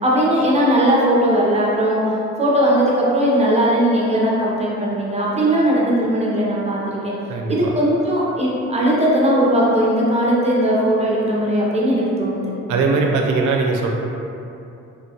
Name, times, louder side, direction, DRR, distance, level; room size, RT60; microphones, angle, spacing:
voice 1, 0.0-2.0 2.4-7.1 7.5-12.4, right 1 dB, 20° right, -5 dB, 0.6 m, -18 dB
voice 2, 7.3-7.7 12.7-13.9, right 4 dB, 80° right, 1 dB, 0.5 m, -20 dB
3.1 x 2.2 x 2.8 m, 2.7 s
cardioid pair, 90°, 30 cm